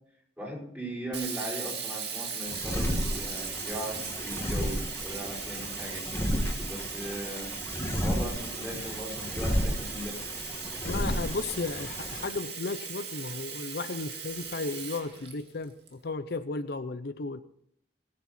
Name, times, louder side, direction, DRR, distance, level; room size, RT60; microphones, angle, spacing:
voice 1, 0.4-6.1 6.6-7.5 7.8-10.3, equal, 10° right, -3 dB, 5.0 m, -38 dB
Sink (filling or washing), 1.1-15.9, right 6 dB, 65° right, 2.3 m, -38 dB
sound 1, 2.5-12.3, equal, 15° left, 2.0 m, -33 dB
voice 2, 10.8-17.4, left 3 dB, 65° left, 10 dB, 0.7 m, -34 dB
20.0 x 9.0 x 4.3 m, 0.69 s
head